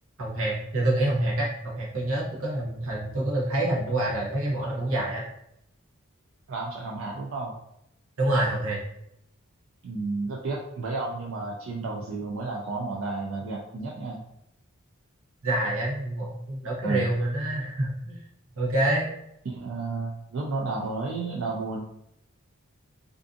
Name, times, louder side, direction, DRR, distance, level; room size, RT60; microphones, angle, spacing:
voice 1, 0.2-5.2 8.2-8.8 15.4-18.2 18.6-19.1, right 1 dB, 80° right, -5 dB, 0.9 m, -27 dB
voice 2, 6.5-7.5 9.8-14.2 16.8-17.1 19.5-21.9, right 3 dB, 60° right, -2 dB, 0.4 m, -32 dB
2.5 x 2.4 x 2.5 m, 0.78 s
head